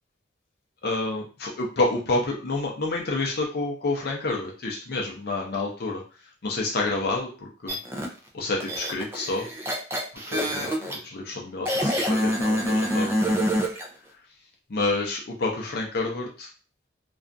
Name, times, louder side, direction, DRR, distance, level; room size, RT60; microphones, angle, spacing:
voice 1, 0.8-6.0 6.4-7.3 7.6-7.8 8.3-9.5 10.3-13.4 14.7-16.5, left 2 dB, 55° left, -1 dB, 0.5 m, -28 dB
sound 1, 7.7-8.1 8.6-11.0 11.7-13.9, equal, 15° right, 0.3 m, -26 dB
2.4 x 2.2 x 2.5 m, 0.36 s
head